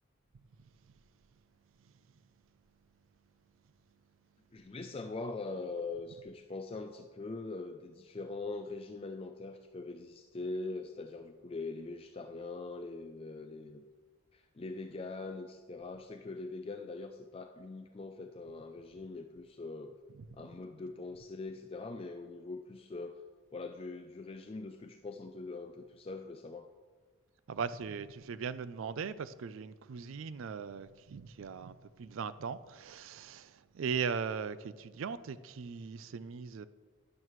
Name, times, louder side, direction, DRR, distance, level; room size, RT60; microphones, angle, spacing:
voice 1, 4.5-13.9 14.3-20.0 20.3-23.2 23.5-26.7, left 3 dB, 25° left, 0.4 m, -42 dB
voice 2, 27.5-36.7, right 6 dB, 65° right, 0.4 m, -39 dB
12.0 x 10.5 x 3.1 m
head